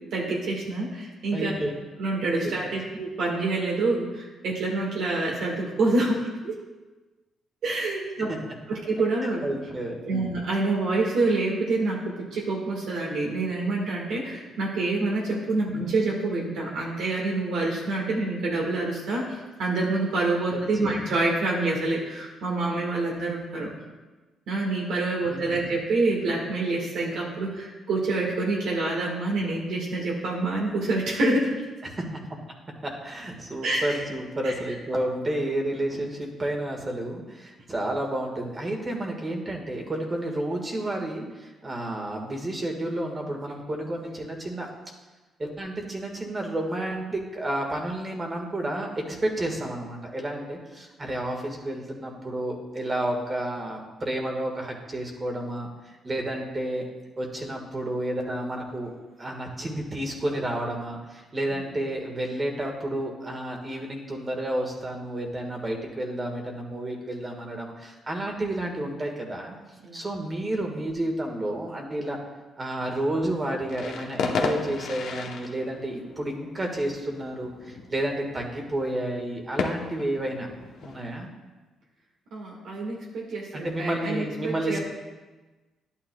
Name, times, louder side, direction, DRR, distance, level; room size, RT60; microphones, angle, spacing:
voice 1, 0.1-1.5 2.0-6.5 7.6-8.3 8.7-9.4 10.0-23.7 24.5-31.5 33.6-34.0 34.4-34.5 61.5-61.7 69.8-70.0 82.3-84.8, right 2 dB, 75° right, -3 dB, 1.6 m, -27 dB
voice 2, 1.3-1.7 2.4-2.6 9.2-10.0 15.7-15.8 20.5-21.0 25.3-25.7 31.8-32.1 32.8-44.7 45.4-56.8 57.2-58.9 59.2-69.6 69.9-72.2 72.6-80.5 80.8-81.3 83.5-84.8, right 1 dB, 30° right, 2 dB, 1.6 m, -31 dB
sound 1, 73.7-81.3, left 4 dB, 75° left, 0.8 m, -34 dB
11.0 x 8.8 x 2.2 m, 1.2 s
cardioid pair, 90°, 0 cm